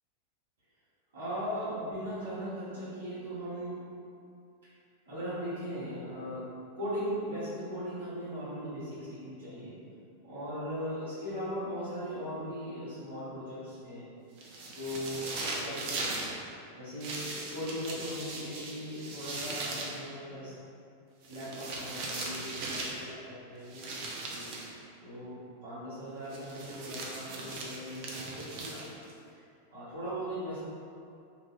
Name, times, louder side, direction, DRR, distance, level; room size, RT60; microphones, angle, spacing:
voice 1, 1.1-3.8 5.1-9.8 10.2-14.1 14.7-16.3 16.8-20.5 21.2-24.5 25.0-28.8 29.3-29.4 29.7-30.6, equal, 65° right, -12 dB, 0.9 m, -38 dB
sound 1, 14.4-16.3 17.0-20.0 21.2-23.0 23.7-24.7 26.3-29.1, right 2 dB, 45° right, 0.5 m, -39 dB
2.6 x 2.4 x 3.5 m, 2.5 s
figure-of-eight pair, 90°, 0 cm